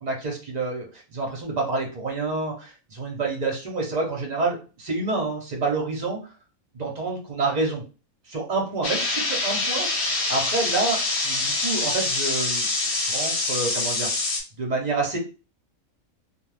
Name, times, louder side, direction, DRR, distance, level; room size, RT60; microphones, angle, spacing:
voice 1, 0.0-6.2 6.7-7.8 8.3-9.9 10.3-12.7 13.0-14.1 14.6-15.2, right 3 dB, 40° right, 0 dB, 0.6 m, -28 dB
sound 1, 8.8-14.4, left 3 dB, 55° left, 1.0 m, -25 dB
2.4 x 2.3 x 3.2 m, 0.34 s
omnidirectional pair, 1.5 m